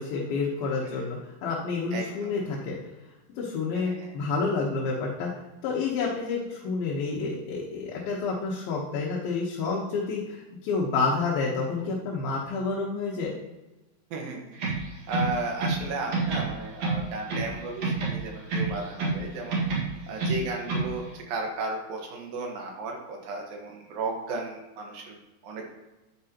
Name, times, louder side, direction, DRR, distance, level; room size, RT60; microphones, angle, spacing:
voice 1, 0.0-2.8 3.4-13.4, left 4 dB, 85° left, -4 dB, 3.1 m, -29 dB
voice 2, 1.9-2.5 3.7-4.1 14.1-14.6 15.1-19.6 20.1-25.7, right 3 dB, 75° right, 1 dB, 3.2 m, -34 dB
sound 1, 14.5-15.9 16.1-17.5 17.8-19.2 19.5-20.9, right 3 dB, 50° right, 2.9 m, -28 dB
10.5 x 8.8 x 3.0 m, 1.1 s
omnidirectional pair, 4.1 m